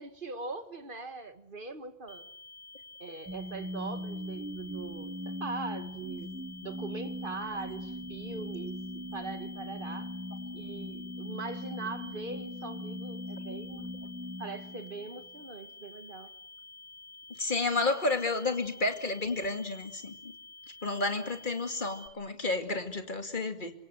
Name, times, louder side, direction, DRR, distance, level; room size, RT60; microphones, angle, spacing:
voice 1, 0.0-2.3 3.0-6.3 6.6-10.1 10.5-13.9 14.4-16.3, right 3 dB, 50° right, 2.0 m, -41 dB
sound 1, 2.1-22.1, left 3 dB, 5° left, 3.5 m, -50 dB
sound 2, 3.3-15.4, left 1 dB, 15° right, 1.3 m, -40 dB
voice 2, 17.3-20.3 20.8-23.7, left 3 dB, 50° left, 2.6 m, -31 dB
27.0 x 24.5 x 7.9 m
omnidirectional pair, 1.1 m